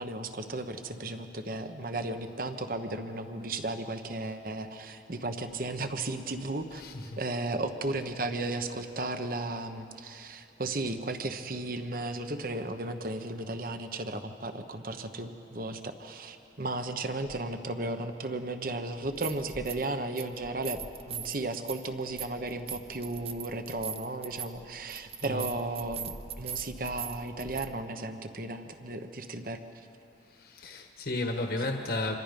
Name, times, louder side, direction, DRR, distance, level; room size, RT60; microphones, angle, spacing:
voice 1, 0.0-20.8 21.1-29.6, right 2 dB, 50° right, 8 dB, 1.2 m, -35 dB
voice 2, 6.8-7.2 25.2-25.4 30.4-32.2, left 2 dB, 55° left, 3 dB, 1.4 m, -33 dB
sound 1, 19.0-19.9 20.2-27.7, right 7 dB, 35° right, 0.7 m, -41 dB
26.5 x 26.0 x 5.4 m, 2.7 s
head